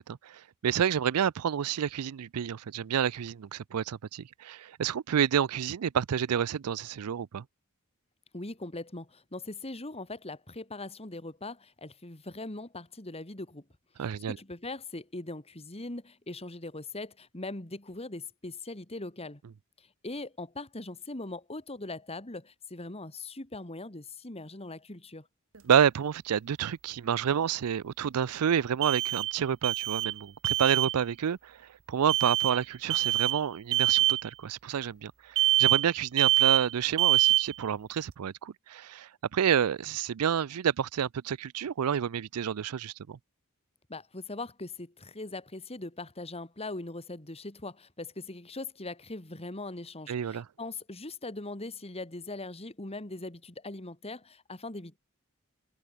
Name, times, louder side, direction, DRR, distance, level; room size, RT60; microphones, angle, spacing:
voice 1, 0.0-7.4 14.0-14.4 25.6-43.2 50.1-50.5, right 8 dB, 90° right, 0.4 m, -29 dB
voice 2, 8.3-13.6 14.0-19.4 19.8-25.3 43.9-55.0, left 2 dB, 30° left, 2.3 m, -40 dB
sound 1, 25.6-25.7 28.8-29.4 29.6-30.2 30.4-30.9 32.1-32.6 32.9-33.4 33.7-34.2 35.4-35.9 36.2-36.7 37.0-37.5, right 14 dB, 65° right, 1.1 m, -25 dB
head